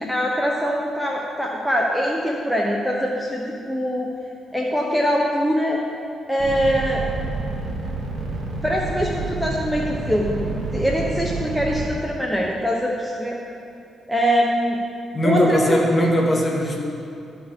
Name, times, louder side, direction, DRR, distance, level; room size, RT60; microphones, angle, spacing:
voice 1, 0.0-4.1 4.5-5.8 6.3-7.0 8.6-13.4 14.1-14.8 15.2-16.1, equal, ahead, -2 dB, 0.8 m, -23 dB
sound 1, 6.4-11.9, right 3 dB, 45° right, 1.9 m, -28 dB
voice 2, 15.1-16.8, equal, 30° left, -1 dB, 1.5 m, -20 dB
12.5 x 4.9 x 5.1 m, 2.7 s
cardioid pair, 100°, 0 cm